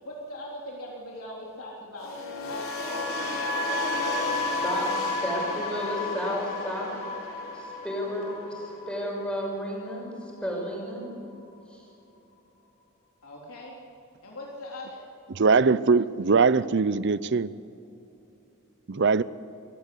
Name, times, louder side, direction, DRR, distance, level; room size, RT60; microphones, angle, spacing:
voice 1, 0.0-2.1 2.5-3.0 3.7-4.5 13.2-13.7 14.2-15.0, left 1 dB, 85° left, -3 dB, 3.5 m, -40 dB
sound 1, 2.0-10.1 10.4-10.7, left 2 dB, 70° left, 3.9 m, -32 dB
voice 2, 4.6-6.9 7.5-11.1 11.7-11.8, equal, 5° left, -1 dB, 6.2 m, -32 dB
voice 3, 15.3-17.5 18.9-19.2, right 4 dB, 55° right, 17 dB, 0.6 m, -21 dB
26.0 x 15.0 x 8.5 m, 2.8 s
head